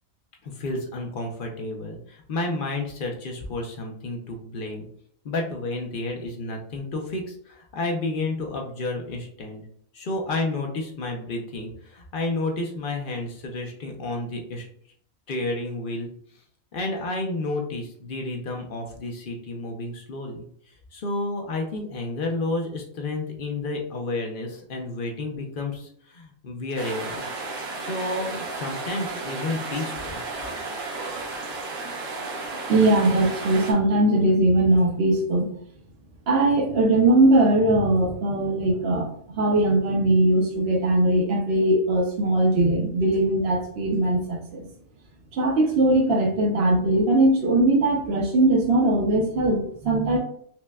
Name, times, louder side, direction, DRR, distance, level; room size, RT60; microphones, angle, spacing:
voice 1, 0.4-4.9 5.2-9.6 9.9-14.7 15.3-16.1 16.7-20.5 20.9-27.2 27.8-30.2, left 2 dB, 55° left, 2 dB, 0.6 m, -31 dB
sound 1, 26.8-33.7, right 3 dB, 85° right, 1.3 m, -33 dB
voice 2, 32.7-35.5 36.3-39.1 39.4-44.6 45.3-50.2, right 1 dB, 55° right, -2 dB, 0.8 m, -20 dB
5.7 x 2.2 x 2.2 m, 0.63 s
omnidirectional pair, 1.5 m